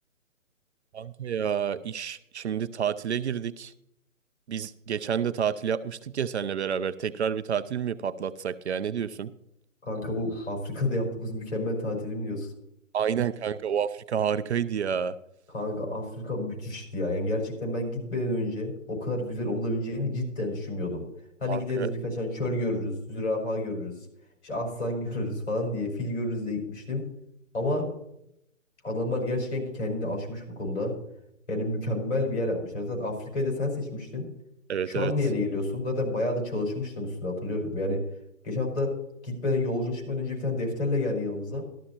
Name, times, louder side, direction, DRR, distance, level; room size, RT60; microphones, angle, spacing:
voice 1, 0.9-3.7 4.5-9.3 12.9-15.2 21.5-21.9 34.7-35.1, right 8 dB, 55° right, 13 dB, 0.6 m, -29 dB
voice 2, 9.8-12.5 15.5-21.1 21.4-24.0 24.4-27.1 27.5-27.9 28.8-31.0 31.5-34.3 34.9-38.0 38.4-41.6, left 2 dB, 55° left, 1 dB, 5.5 m, -30 dB
13.5 x 13.0 x 2.9 m, 0.78 s
hypercardioid pair, 150°, 40 cm